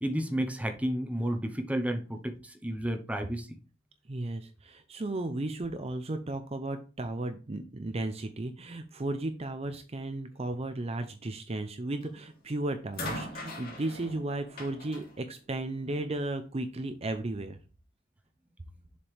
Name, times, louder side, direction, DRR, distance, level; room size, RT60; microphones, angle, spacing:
voice 1, 0.0-3.5, right 1 dB, 10° right, 0.9 m, -31 dB
voice 2, 4.1-17.6, right 2 dB, 35° right, 0.6 m, -35 dB
sound 1, 12.0-12.4 12.9-16.2 17.2-17.3, left 1 dB, 50° left, 2.5 m, -42 dB
7.1 x 5.0 x 3.3 m
head